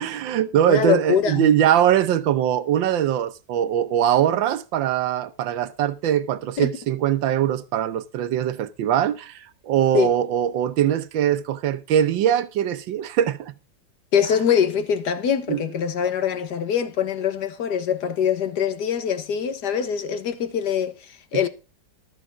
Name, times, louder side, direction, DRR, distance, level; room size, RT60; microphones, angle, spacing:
voice 1, 0.0-13.5 15.5-15.6, right 10 dB, 90° right, 1.6 m, -22 dB
voice 2, 0.7-1.5 6.6-6.7 9.9-10.1 14.1-21.5, left 8 dB, 65° left, 1.7 m, -23 dB
13.5 x 5.9 x 6.1 m
omnidirectional pair, 2.0 m